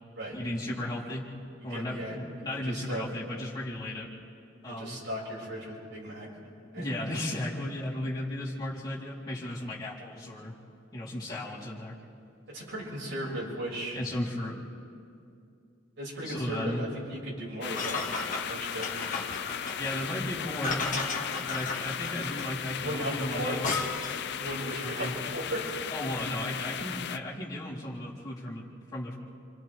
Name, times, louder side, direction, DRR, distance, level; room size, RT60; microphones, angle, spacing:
voice 1, 0.3-1.3 1.6-4.1 4.6-5.0 6.8-10.5 10.9-12.0 13.9-14.6 16.2-16.8 19.8-20.9 21.4-23.7 24.8-25.1 25.9-28.7 28.9-29.2, left 1 dB, 20° left, -8 dB, 4.1 m, -35 dB
voice 2, 1.7-2.2 2.5-3.1 4.7-6.3 6.7-6.8 12.5-14.0 16.0-18.0 18.5-18.9 22.8-23.6 24.4-25.6, right 1 dB, 75° right, -6 dB, 6.7 m, -36 dB
sound 1, 17.6-27.2, left 8 dB, 60° left, 0.6 m, -36 dB
sound 2, 17.7-24.3, left 4 dB, 45° left, 1.6 m, -35 dB
29.0 x 26.0 x 3.7 m, 2.5 s
head